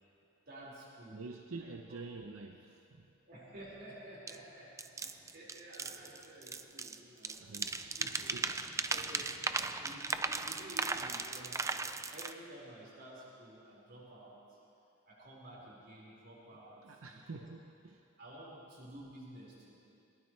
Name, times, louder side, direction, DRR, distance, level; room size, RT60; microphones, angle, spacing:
voice 1, 0.4-1.2 1.9-2.0 3.3-7.5 8.0-8.3 8.9-11.6 12.1-14.6 15.1-16.8 17.1-17.4 18.2-19.8, right 1 dB, 50° right, -6 dB, 5.1 m, -52 dB
voice 2, 1.1-3.1 7.4-8.6 16.8-18.1, right 3 dB, 90° right, 4 dB, 0.7 m, -48 dB
sound 1, 4.3-4.4 4.8-7.0 7.2-12.3, right 4 dB, 15° right, 0.4 m, -37 dB
21.5 x 19.5 x 3.3 m, 2.7 s
head